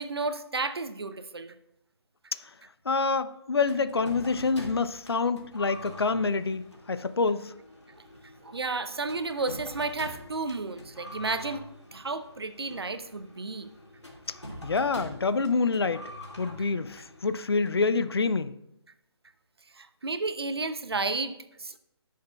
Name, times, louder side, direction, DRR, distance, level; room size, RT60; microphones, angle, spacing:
voice 1, 0.0-1.5 8.0-8.1 8.4-11.6 11.9-13.7 19.7-21.8, right 3 dB, 65° right, 0.7 m, -32 dB
voice 2, 2.9-7.5 14.6-16.0 16.4-18.5, left 4 dB, 60° left, 0.5 m, -27 dB
sound 1, 3.7-18.4, left 1 dB, 85° left, 2.0 m, -46 dB
16.0 x 6.5 x 2.3 m
figure-of-eight pair, 145°, 14 cm